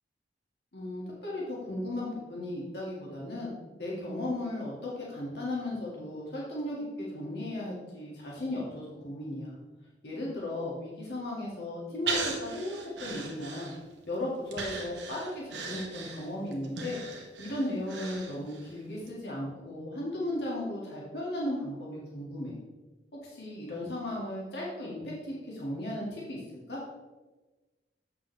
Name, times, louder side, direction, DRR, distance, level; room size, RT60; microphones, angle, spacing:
voice 1, 0.7-9.5 10.0-13.7 14.1-17.0 17.4-22.5 23.2-26.8, left 1 dB, 70° left, -5 dB, 2.1 m, -36 dB
Breathing, 12.1-14.0 14.5-18.7 19.1-19.2, right 4 dB, 85° right, 1.2 m, -37 dB
8.1 x 5.9 x 3.3 m, 1.2 s
head